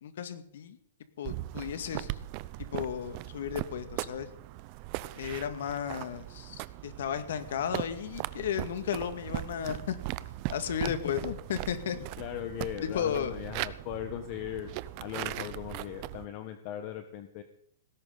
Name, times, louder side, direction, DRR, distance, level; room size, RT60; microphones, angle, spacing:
voice 1, 0.0-0.8 1.2-2.2 2.7-4.3 5.2-10.0 10.5-12.0 12.8-13.3, left 8 dB, 60° left, 10 dB, 1.9 m, -34 dB
sound 1, 1.2-16.3, right 18 dB, 30° right, 0.5 m, -39 dB
voice 2, 11.9-14.7 15.0-17.4, left 11 dB, 30° left, 8 dB, 1.1 m, -39 dB
18.0 x 16.0 x 4.0 m, 0.66 s
hypercardioid pair, 170°, 0 cm